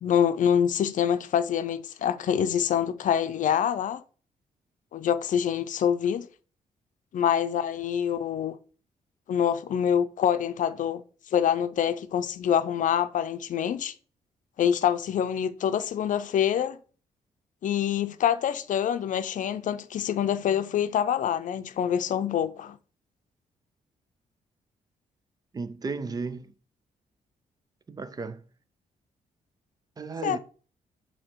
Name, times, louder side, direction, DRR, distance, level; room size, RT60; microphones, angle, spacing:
voice 1, 0.0-4.0 4.9-6.3 7.1-8.6 9.3-11.0 11.3-13.9 14.6-16.8 17.6-22.8 30.2-30.4, left 9 dB, 65° left, 0.6 m, -26 dB
voice 2, 25.5-26.5 27.9-28.4 30.0-30.4, right 4 dB, 25° right, 0.5 m, -34 dB
7.3 x 2.9 x 4.5 m
cardioid pair, 130°, 14 cm